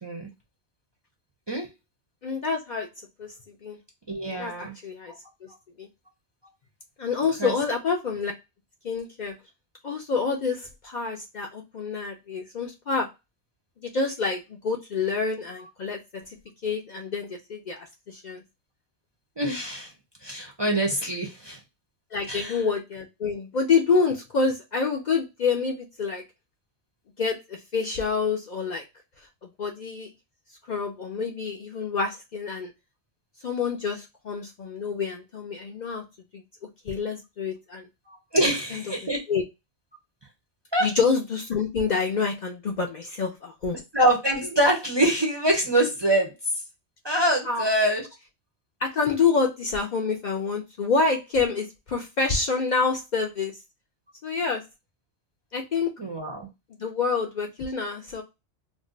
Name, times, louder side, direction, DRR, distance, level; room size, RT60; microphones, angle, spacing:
voice 1, 2.2-2.9 3.2-3.8 4.4-5.1 5.4-5.5 5.8-5.9 7.0-8.3 8.8-9.4 9.8-13.1 13.8-16.4 16.6-18.4 22.1-26.2 27.2-28.8 29.2-30.1 30.7-32.7 33.4-36.0 36.3-36.4 36.8-37.9 38.7-38.8 39.3-39.4 40.8-43.8 47.4-47.7 48.8-53.6 54.2-54.6 55.5-55.9 56.8-58.2, left 4 dB, 55° left, 1 dB, 0.5 m, -27 dB
voice 2, 4.1-4.7 7.4-7.5 19.4-19.9 20.2-21.6 22.3-22.6 38.1-39.2 40.7-40.9 43.9-46.6 47.0-48.1 56.0-56.5, right 1 dB, 30° right, 0 dB, 0.5 m, -24 dB
2.6 x 2.1 x 3.7 m, 0.24 s
omnidirectional pair, 1.1 m